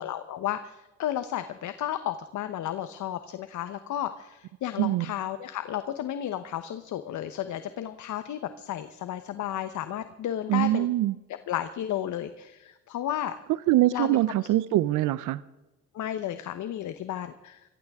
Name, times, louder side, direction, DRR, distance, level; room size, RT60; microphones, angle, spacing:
voice 1, 0.0-10.9 11.5-13.3 13.9-14.2 15.9-17.6, left 11 dB, 75° left, 10 dB, 1.0 m, -33 dB
voice 2, 10.5-11.2 13.7-15.4, right 15 dB, 90° right, 17 dB, 0.6 m, -23 dB
25.0 x 15.5 x 3.6 m, 1.0 s
cardioid pair, 90°, 30 cm